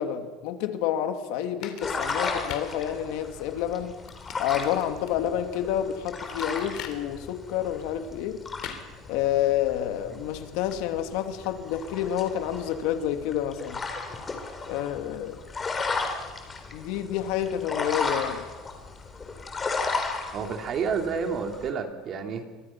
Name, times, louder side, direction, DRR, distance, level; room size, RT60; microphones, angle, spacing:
voice 1, 0.0-3.9 4.4-8.4 9.1-13.8 14.7-15.4 16.7-18.4, left 10 dB, 70° left, 6 dB, 2.5 m, -29 dB
sound 1, 1.6-2.7 4.1-5.1 6.4-7.0 8.6-8.8, left 10 dB, 55° left, 3.5 m, -39 dB
sound 2, 1.8-21.7, left 4 dB, 20° left, 3.7 m, -35 dB
voice 2, 20.3-22.4, right 6 dB, 35° right, 4 dB, 3.0 m, -29 dB
29.0 x 25.0 x 6.0 m, 1.3 s
cardioid pair, 155°, 0 cm